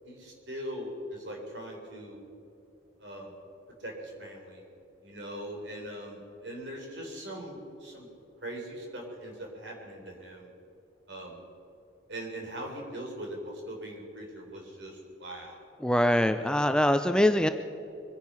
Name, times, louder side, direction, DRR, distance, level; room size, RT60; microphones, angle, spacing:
voice 1, 0.0-2.2 3.0-3.3 3.8-4.6 5.0-8.1 8.4-10.5 11.1-11.4 12.1-15.7 16.4-16.6, right 1 dB, 65° right, 0 dB, 3.7 m, -41 dB
voice 2, 15.8-17.5, left 1 dB, 5° left, 8 dB, 0.4 m, -23 dB
23.5 x 10.5 x 5.6 m, 2.7 s
head